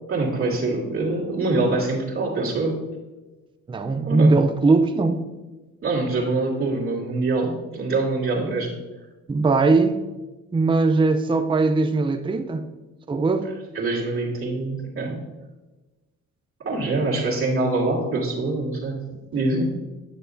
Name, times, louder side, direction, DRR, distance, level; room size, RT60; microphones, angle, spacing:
voice 1, 0.1-2.8 4.0-4.3 5.8-8.7 13.7-15.2 16.6-19.0 19.3-19.7, right 2 dB, 45° right, -6 dB, 2.3 m, -24 dB
voice 2, 3.7-5.3 9.3-10.0 10.5-12.7 13.1-13.5, right 3 dB, 15° right, 8 dB, 0.5 m, -20 dB
9.0 x 6.6 x 2.7 m, 1.1 s
cardioid pair, 90°, 30 cm